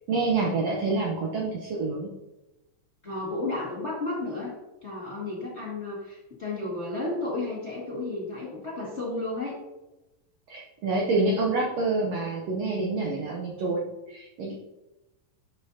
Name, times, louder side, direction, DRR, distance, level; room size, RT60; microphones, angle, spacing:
voice 1, 0.1-2.1 10.5-14.5, right 3 dB, 75° right, -1 dB, 1.5 m, -27 dB
voice 2, 3.0-4.5 4.8-9.6, left 2 dB, 25° left, -6 dB, 1.6 m, -32 dB
12.0 x 5.5 x 2.8 m, 1.0 s
omnidirectional pair, 4.0 m